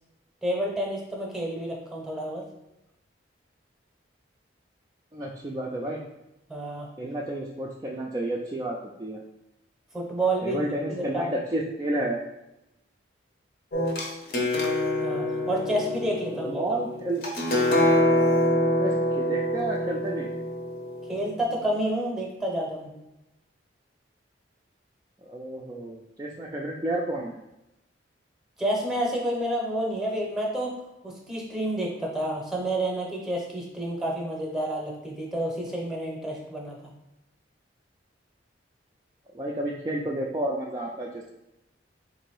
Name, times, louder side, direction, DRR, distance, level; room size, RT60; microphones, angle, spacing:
voice 1, 0.4-2.5 6.5-6.9 9.9-10.6 10.9-11.3 15.0-16.6 21.1-22.9 28.6-30.8 31.0-36.8, right 1 dB, ahead, -1 dB, 0.8 m, -29 dB
voice 2, 5.1-6.0 7.0-9.2 10.4-12.2 16.3-17.2 18.8-20.3 25.2-27.4 39.3-41.3, right 1 dB, 20° right, -3 dB, 0.3 m, -31 dB
sound 1, 13.7-21.4, left 1 dB, 50° left, 0.8 m, -25 dB
3.9 x 2.6 x 4.7 m, 0.91 s
head